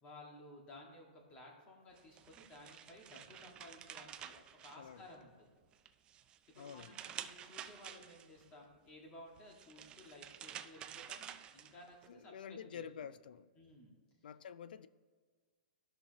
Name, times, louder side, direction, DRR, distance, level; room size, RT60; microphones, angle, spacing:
voice 1, 0.0-5.6 6.5-12.8 13.6-14.0, left 1 dB, 20° left, 1.8 m, -56 dB
sound 1, 2.0-5.3 5.7-8.4 9.4-12.1, right 9 dB, 20° right, 0.3 m, -50 dB
voice 2, 6.6-6.9 12.1-13.5 14.2-14.9, left 8 dB, 75° left, 0.4 m, -49 dB
14.0 x 5.7 x 3.0 m
hypercardioid pair, 155°, 5 cm